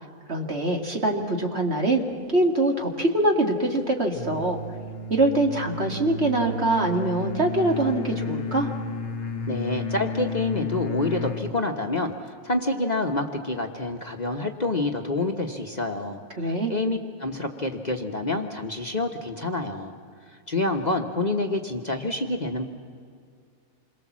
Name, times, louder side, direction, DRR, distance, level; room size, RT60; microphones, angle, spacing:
voice 1, 0.3-2.0 2.3-4.6 5.1-8.7 16.4-16.7, right 2 dB, 45° right, 1 dB, 2.6 m, -23 dB
sound 1, 4.1-11.5, left 3 dB, 55° left, 1.4 m, -32 dB
voice 2, 9.5-19.9 20.5-22.6, left 2 dB, 30° left, 2 dB, 1.2 m, -28 dB
28.0 x 22.5 x 7.4 m, 2.2 s
omnidirectional pair, 1.5 m